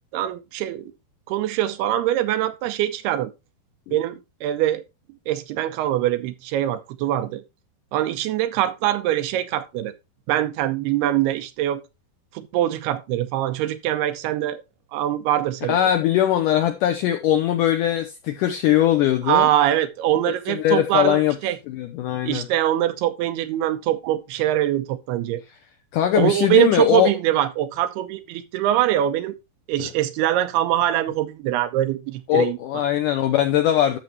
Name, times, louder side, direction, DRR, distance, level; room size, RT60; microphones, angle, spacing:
voice 1, 0.1-0.9 1.3-3.3 3.9-4.8 5.3-7.4 7.9-9.9 10.3-11.8 12.3-14.6 14.9-15.8 19.3-21.6 22.2-25.4 26.1-29.3 29.7-32.6, right 12 dB, 80° right, 2.8 m, -23 dB
voice 2, 15.7-19.5 20.5-21.4 21.7-22.5 25.9-27.1 29.8-29.9 32.3-34.0, left 11 dB, 80° left, 1.8 m, -20 dB
11.5 x 6.8 x 3.0 m
omnidirectional pair, 4.6 m